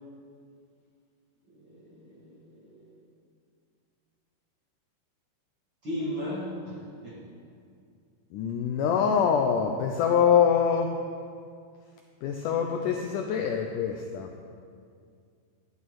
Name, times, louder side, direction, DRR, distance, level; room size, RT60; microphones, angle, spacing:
voice 1, 1.5-2.8 5.8-6.8 7.0-7.3, equal, 40° right, -6 dB, 1.9 m, -36 dB
voice 2, 8.3-10.9 12.2-14.3, left 7 dB, 85° left, 3 dB, 1.8 m, -24 dB
14.0 x 8.4 x 4.7 m, 2.2 s
omnidirectional pair, 4.4 m